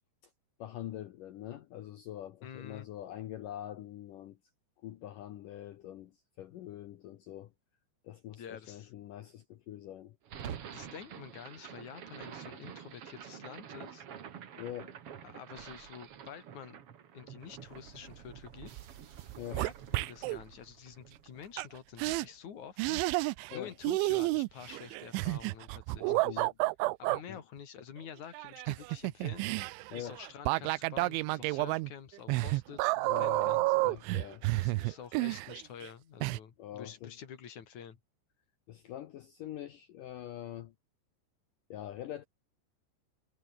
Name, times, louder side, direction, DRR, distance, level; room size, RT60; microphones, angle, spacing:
voice 1, 0.6-4.4 4.8-7.5 8.0-10.2 14.6-15.0 19.4-19.6 23.5-23.7 26.1-26.6 27.3-27.4 29.9-30.2 33.1-34.5 36.6-37.1 38.7-40.7 41.7-42.2, left 12 dB, 75° left, 2.0 m, -44 dB
voice 2, 2.4-2.9 8.3-8.9 10.7-14.0 15.2-16.8 17.1-18.7 19.5-26.5 27.0-33.7 34.6-38.0, left 8 dB, 45° left, 3.3 m, -48 dB
sound 1, 10.2-22.5, right 8 dB, 60° right, 1.5 m, -48 dB
sound 2, 18.6-18.9 19.2-20.4 21.6-21.7 22.0-22.3 22.8-23.6 23.8-27.2 28.3-35.9 36.2-36.4, right 22 dB, 90° right, 3.1 m, -31 dB
omnidirectional pair, 5.2 m